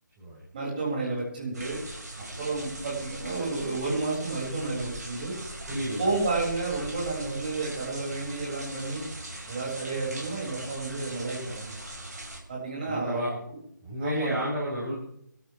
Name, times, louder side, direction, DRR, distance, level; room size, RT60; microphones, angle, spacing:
voice 1, 0.5-1.8 2.4-5.4 6.0-9.0 9.5-11.7 12.5-13.3 14.0-14.4, right 3 dB, 30° right, -4 dB, 7.2 m, -31 dB
sound 1, 1.5-12.4, right 1 dB, 60° right, 5.6 m, -40 dB
voice 2, 5.7-6.1 12.8-13.3 13.8-14.9, equal, 10° right, -9 dB, 4.3 m, -31 dB
26.0 x 13.0 x 3.7 m, 0.73 s
figure-of-eight pair, 155°, 10 cm